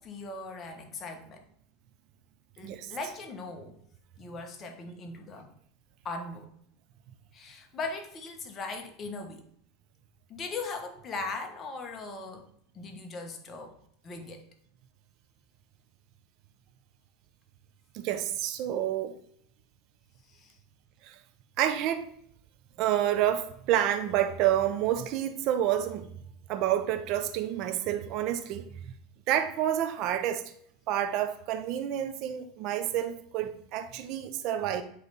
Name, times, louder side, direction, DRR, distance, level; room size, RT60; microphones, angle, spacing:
voice 1, 0.0-1.4 2.6-3.8 4.2-5.5 6.0-6.5 7.3-9.5 10.3-12.5 12.7-13.7 14.0-14.4 20.3-20.6, left 3 dB, 30° left, 1.2 m, -39 dB
voice 2, 17.9-19.2 21.0-21.2 21.6-22.1 22.8-26.1 26.5-28.9 29.3-30.4 30.9-34.8, right 11 dB, 55° right, 0.7 m, -29 dB
8.1 x 3.3 x 4.1 m
supercardioid pair, 125°, 0 cm